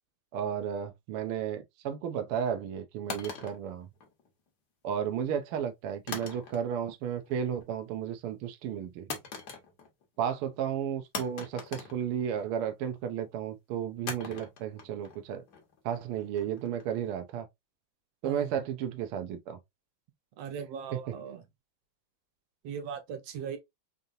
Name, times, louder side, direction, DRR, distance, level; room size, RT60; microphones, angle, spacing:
voice 1, 0.3-3.9 4.8-9.1 10.2-15.4 15.8-17.5 18.2-19.6 20.9-21.0, right 8 dB, 85° right, 1.2 m, -33 dB
sound 1, 3.1-4.5 6.1-6.9 7.2-7.7 9.1-10.0 10.3-10.4 11.1-12.7 14.1-17.1, left 5 dB, 65° left, 1.0 m, -42 dB
voice 2, 18.2-18.5 20.4-21.4 22.6-23.6, right 7 dB, 70° right, 1.7 m, -38 dB
5.2 x 2.8 x 2.5 m
omnidirectional pair, 3.3 m